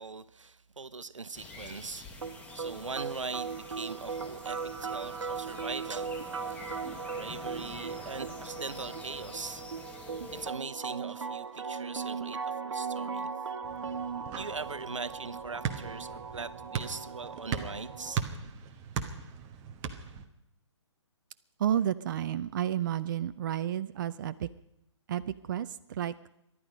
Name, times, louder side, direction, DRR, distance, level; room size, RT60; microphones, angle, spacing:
voice 1, 0.0-2.1 2.5-6.8 7.2-9.6 10.3-13.3 14.3-18.2, right 4 dB, 85° right, 14 dB, 1.0 m, -41 dB
sound 1, 1.3-10.5, left 3 dB, 10° left, 1.5 m, -47 dB
sound 2, 2.2-18.2, right 5 dB, 65° right, 1.4 m, -38 dB
sound 3, 13.6-20.3, right 7 dB, 20° right, 1.1 m, -38 dB
voice 2, 21.6-24.5 25.1-26.1, right 10 dB, 40° right, 12 dB, 0.5 m, -31 dB
24.0 x 11.0 x 5.2 m, 0.84 s
figure-of-eight pair, 140°, 16 cm